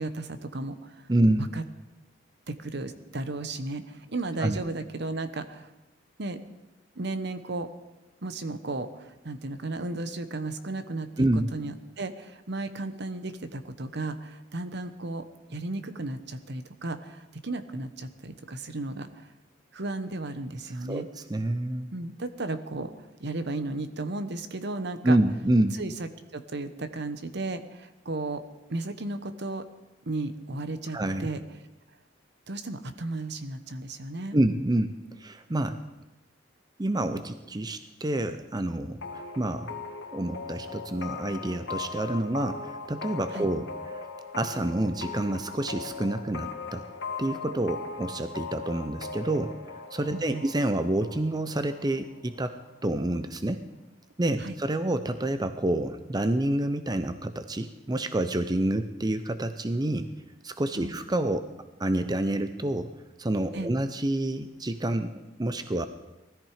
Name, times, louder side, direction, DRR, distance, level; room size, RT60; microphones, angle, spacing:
voice 1, 0.0-1.1 1.4-1.6 2.5-5.7 6.2-6.4 7.0-7.7 8.2-15.2 15.5-19.3 19.7-21.1 21.9-22.9 23.2-25.2 25.8-28.4 28.7-29.7 30.0-31.4 32.5-34.4 43.3-43.5 50.1-50.4 54.4-54.6 60.8-61.0 63.5-63.7, right 2 dB, 60° right, 10 dB, 1.1 m, -34 dB
voice 2, 1.1-1.5 4.4-4.6 11.2-11.5 20.8-21.9 25.0-25.8 30.9-31.3 34.3-35.8 36.8-39.7 40.1-44.0 44.3-46.8 47.2-49.5 49.9-52.6 52.8-53.6 54.2-60.1 60.4-61.5 61.8-62.9 63.2-65.1 65.4-65.9, right 1 dB, 20° right, 10 dB, 0.7 m, -28 dB
sound 1, 39.0-52.5, left 4 dB, 70° left, 2.0 m, -39 dB
19.5 x 13.5 x 5.0 m, 1.0 s
head